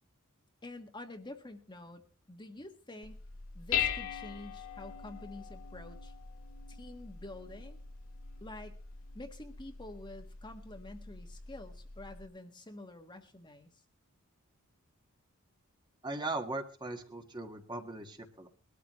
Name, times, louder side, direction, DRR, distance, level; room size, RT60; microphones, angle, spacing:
voice 1, 0.6-2.0 2.3-3.2 3.5-6.1 6.7-7.8 8.4-8.8 9.1-13.7, left 2 dB, 20° left, 5 dB, 1.5 m, -48 dB
Dishes pots and pans, 3.0-12.3, left 8 dB, 70° left, 2.1 m, -41 dB
voice 2, 16.0-18.5, right 2 dB, 20° right, 4 dB, 1.6 m, -39 dB
21.5 x 13.5 x 3.1 m, 0.32 s
head